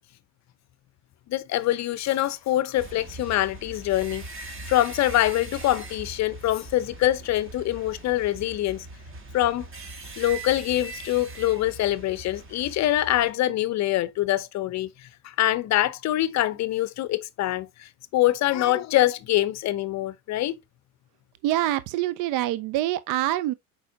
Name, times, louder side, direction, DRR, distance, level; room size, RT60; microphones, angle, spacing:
voice 1, 1.3-4.2 4.7-8.9 9.3-9.7 10.2-14.9 15.2-20.6, left 14 dB, 40° left, 0.7 m, -24 dB
sound 1, 2.7-13.3, right 2 dB, 25° right, 1.8 m, -41 dB
voice 2, 21.4-23.5, right 14 dB, 45° right, 0.5 m, -25 dB
7.6 x 4.6 x 2.7 m
hypercardioid pair, 80°, 45 cm